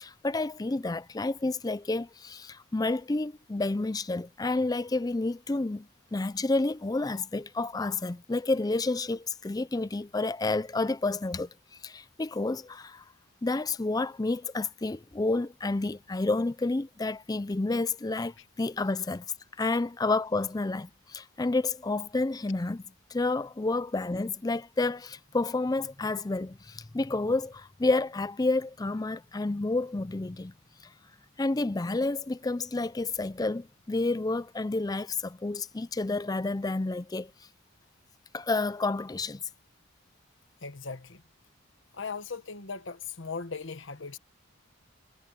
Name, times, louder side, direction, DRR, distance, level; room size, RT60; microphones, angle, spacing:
voice 1, 0.0-11.5 11.8-13.0 13.4-19.2 19.6-22.8 23.1-30.5 31.4-37.3 38.3-39.4, left 2 dB, 20° left, 0.4 m, -30 dB
voice 2, 40.6-41.2 41.9-44.2, left 4 dB, 60° left, 1.2 m, -38 dB
head